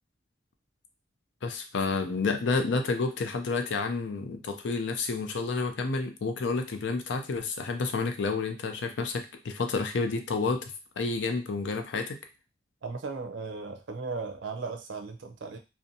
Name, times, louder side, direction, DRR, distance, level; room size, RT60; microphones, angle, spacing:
voice 1, 1.4-10.6 11.0-12.2, left 4 dB, 85° left, 6 dB, 0.5 m, -30 dB
voice 2, 12.8-15.6, right 4 dB, 85° right, 5 dB, 0.5 m, -36 dB
2.6 x 2.1 x 2.6 m, 0.28 s
head